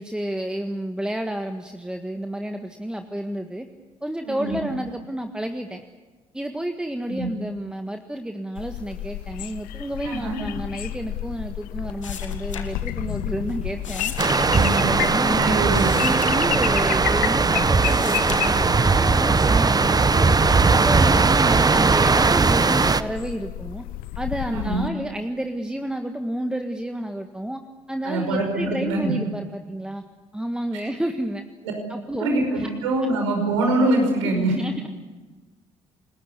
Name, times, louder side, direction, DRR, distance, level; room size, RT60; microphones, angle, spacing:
voice 1, 0.0-3.7 4.0-5.8 6.3-14.1 14.8-15.6 16.0-20.4 20.7-23.8 24.2-27.6 27.9-30.0 30.3-31.4 31.9-32.7 34.2-34.9, right 1 dB, 5° right, 5 dB, 1.7 m, -30 dB
voice 2, 4.2-4.6 7.1-7.3 10.0-10.4 14.5-14.9 15.1-15.9 24.5-24.9 28.0-29.1 32.2-34.5, right 2 dB, 80° right, 3 dB, 5.5 m, -24 dB
sound 1, 8.6-24.9, left 14 dB, 65° left, 0.9 m, -32 dB
sound 2, 12.0-13.2 13.5-17.3 17.6-19.1 19.5-20.1, left 7 dB, 90° left, 1.5 m, -38 dB
sound 3, 14.2-23.0, right 4 dB, 25° right, 1.1 m, -19 dB
29.5 x 20.0 x 8.4 m, 1.3 s
hypercardioid pair, 50°, 16 cm